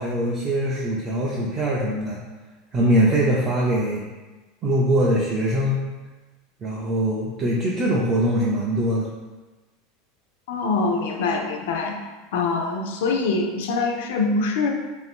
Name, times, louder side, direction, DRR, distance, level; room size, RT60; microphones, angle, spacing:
voice 1, 0.0-2.2 2.7-4.0 4.6-5.8 6.6-9.1, equal, 20° right, -5 dB, 0.3 m, -22 dB
voice 2, 10.5-12.0 12.3-14.7, left 3 dB, 75° left, 3 dB, 0.4 m, -24 dB
2.5 x 2.4 x 3.4 m, 1.2 s
supercardioid pair, 170°, 0 cm